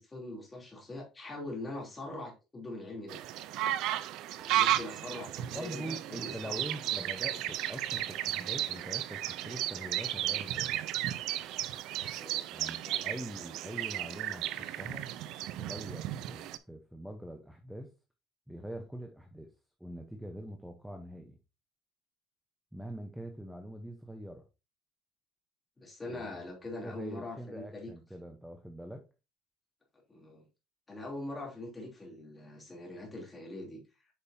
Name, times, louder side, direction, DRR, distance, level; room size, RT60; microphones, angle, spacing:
voice 1, 0.0-3.2 4.4-6.6 12.0-12.4 12.8-13.0 25.8-27.9 30.1-30.5 30.9-33.8, left 2 dB, 15° left, -1 dB, 2.9 m, -43 dB
sound 1, 3.1-16.6, right 13 dB, 60° right, 0.5 m, -34 dB
voice 2, 5.5-10.8 12.5-15.1 15.6-17.9 18.5-19.5 19.8-21.4 22.7-24.5 26.1-29.0, right 1 dB, ahead, 4 dB, 0.8 m, -44 dB
8.4 x 5.3 x 2.7 m, 0.28 s
cardioid pair, 155°, 0 cm